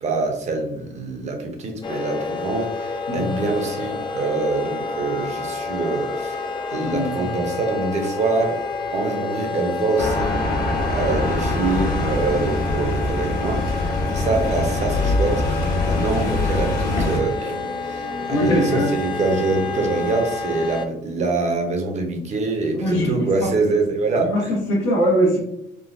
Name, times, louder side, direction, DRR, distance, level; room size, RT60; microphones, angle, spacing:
voice 1, 0.0-6.5 6.7-8.6 8.9-10.4 10.9-24.5, right 3 dB, 40° right, 3 dB, 0.7 m, -25 dB
sound 1, 1.8-20.8, left 4 dB, 25° left, 0.4 m, -29 dB
voice 2, 6.9-7.3 18.3-18.9 22.7-23.3 24.1-24.4 24.7-25.4, equal, 90° left, -5 dB, 1.0 m, -21 dB
sound 2, 10.0-17.2, left 2 dB, 60° left, 1.0 m, -23 dB
3.7 x 2.1 x 2.5 m, 0.77 s
cardioid pair, 110°, 17 cm